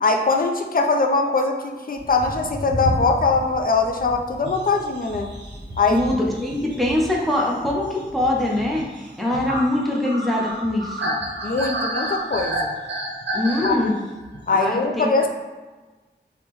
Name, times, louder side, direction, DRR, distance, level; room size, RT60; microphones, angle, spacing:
voice 1, 0.0-5.3 5.8-6.0 11.4-12.7 13.6-13.8 14.5-15.3, left 3 dB, 50° left, 3 dB, 0.4 m, -21 dB
Thunder, 1.9-8.8, left 1 dB, 30° right, 1.5 m, -34 dB
sound 1, 4.4-14.5, right 1 dB, 80° right, 0.6 m, -31 dB
voice 2, 5.9-11.2 13.3-13.9 14.5-15.1, left 1 dB, ahead, -3 dB, 0.7 m, -23 dB
3.5 x 2.1 x 2.9 m, 1.2 s
wide cardioid pair, 50°, 18 cm